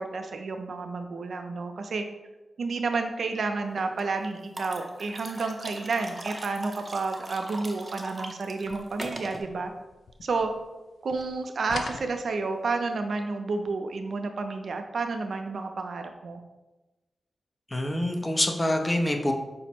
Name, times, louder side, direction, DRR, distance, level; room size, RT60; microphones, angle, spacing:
voice 1, 0.0-2.0 2.6-9.7 10.2-10.5 11.0-16.4, right 3 dB, 75° right, 6 dB, 0.4 m, -30 dB
sound 1, 3.8-4.0 4.6-9.4, right 1 dB, 25° right, 0.6 m, -40 dB
sound 2, 8.6-10.8 11.1-12.9, left 3 dB, 80° left, 0.4 m, -42 dB
voice 2, 17.7-19.3, left 1 dB, 20° left, 3 dB, 0.5 m, -26 dB
4.9 x 2.0 x 4.4 m, 1.1 s
cardioid pair, 70°, 0 cm